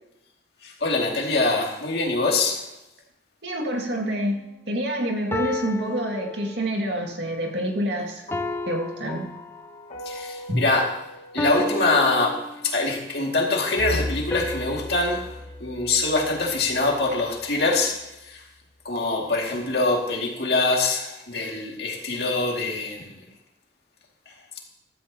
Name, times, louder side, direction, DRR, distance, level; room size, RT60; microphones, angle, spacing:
voice 1, 0.6-2.6 10.1-10.8 11.3-12.4 12.6-15.2 15.6-18.0 18.3-18.4 18.8-23.2, left 3 dB, 60° left, 0 dB, 2.3 m, -24 dB
voice 2, 3.4-4.4 4.7-8.3 8.7-9.3 10.5-10.6, equal, 70° right, 1 dB, 2.1 m, -27 dB
sound 1, 3.8-4.2 5.3-6.9 8.3-10.0 11.4-13.0 14.3-16.7, left 2 dB, 15° left, 0.4 m, -34 dB
sound 2, 8.3-12.7, left 1 dB, 40° left, 1.4 m, -41 dB
Bowed string instrument, 13.8-18.0, left 1 dB, 80° left, 1.1 m, -36 dB
15.0 x 13.0 x 2.9 m, 0.86 s
head